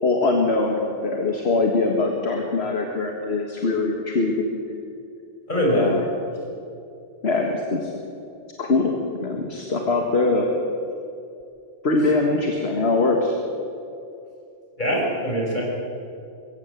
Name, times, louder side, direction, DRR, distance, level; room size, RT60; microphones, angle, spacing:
voice 1, 0.0-4.6 5.7-6.0 7.2-7.9 8.6-10.5 11.8-13.3, left 3 dB, 60° left, 2 dB, 1.9 m, -22 dB
voice 2, 5.5-6.0 14.8-15.6, equal, 40° left, -3 dB, 5.7 m, -22 dB
22.0 x 15.5 x 8.1 m, 2.6 s
omnidirectional pair, 1.2 m